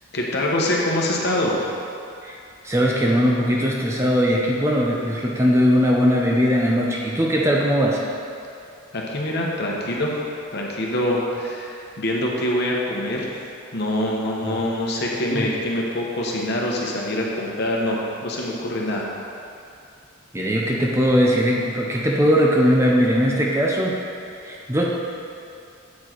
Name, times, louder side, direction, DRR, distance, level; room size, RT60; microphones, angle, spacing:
voice 1, 0.1-1.6 8.9-10.1 10.5-13.3 13.7-19.1, left 1 dB, 50° left, -2 dB, 1.0 m, -24 dB
voice 2, 2.6-8.0 14.4-14.6 15.3-15.5 20.3-23.9 24.4-24.8, equal, 15° right, -2 dB, 0.5 m, -20 dB
8.5 x 4.5 x 4.5 m, 2.6 s
head